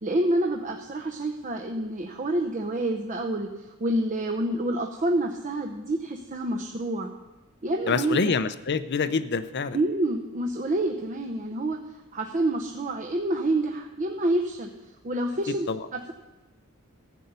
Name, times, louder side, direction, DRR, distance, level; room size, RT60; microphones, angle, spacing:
voice 1, 0.0-3.5 3.8-7.1 7.6-8.3 9.7-11.8 12.1-14.7 15.0-15.7 15.9-16.1, right 1 dB, 35° right, 2 dB, 0.8 m, -27 dB
voice 2, 7.9-9.8 15.7-15.8, left 5 dB, 50° left, 14 dB, 0.6 m, -26 dB
14.0 x 5.5 x 8.0 m, 1.1 s
head